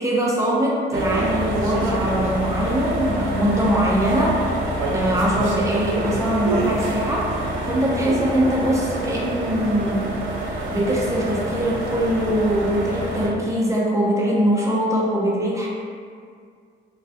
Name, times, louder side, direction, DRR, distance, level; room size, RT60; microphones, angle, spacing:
voice 1, 0.0-4.6 4.9-10.0 10.4-15.7, equal, 15° right, -5 dB, 0.5 m, -22 dB
sound 1, 0.9-13.3, right 1 dB, 80° right, 0.4 m, -26 dB
2.2 x 2.0 x 2.6 m, 2.1 s
cardioid pair, 90°, 20 cm